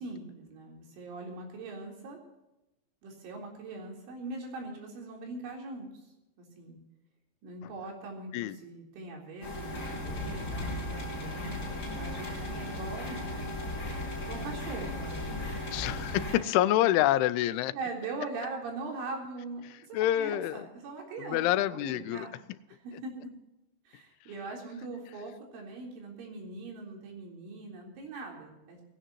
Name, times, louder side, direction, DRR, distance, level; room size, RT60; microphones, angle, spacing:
voice 1, 0.0-2.2 3.0-5.9 6.4-6.8 7.4-13.6 14.2-15.6 16.1-16.4 17.7-22.3 22.7-23.1 23.9-28.8, right 3 dB, 80° right, 0 dB, 6.2 m, -41 dB
sound 1, 9.4-16.4, left 1 dB, 25° left, 5.5 m, -36 dB
voice 2, 15.7-17.7 19.9-20.7 21.2-22.3, left 14 dB, 85° left, 15 dB, 3.1 m, -27 dB
20.0 x 17.0 x 3.0 m, 0.94 s
omnidirectional pair, 5.3 m